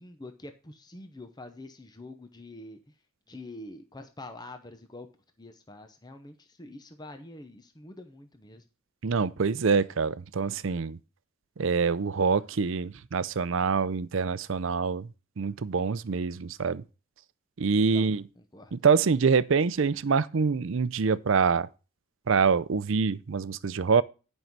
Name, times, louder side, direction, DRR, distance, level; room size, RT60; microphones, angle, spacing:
voice 1, 0.0-2.8 3.3-5.1 5.4-8.6 17.9-18.7, left 2 dB, 20° left, 0.8 m, -46 dB
voice 2, 9.0-11.0 11.6-15.1 15.4-16.8 17.6-18.2 18.7-21.7 22.3-24.0, right 5 dB, 60° right, 0.5 m, -25 dB
10.5 x 5.5 x 4.5 m
head